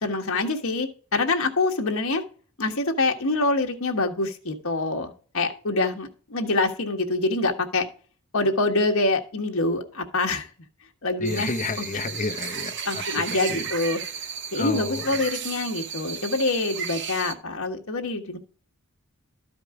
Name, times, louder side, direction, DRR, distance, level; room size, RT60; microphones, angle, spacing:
voice 1, 0.0-2.2 2.6-7.8 8.3-10.5 11.0-11.5 12.8-14.0 14.5-18.4, left 2 dB, 70° left, 1.5 m, -25 dB
voice 2, 11.2-13.2 13.5-13.7 14.5-15.2, left 3 dB, 35° left, 0.8 m, -31 dB
sound 1, 11.2-17.3, right 7 dB, 55° right, 0.9 m, -34 dB
13.0 x 5.1 x 4.9 m
head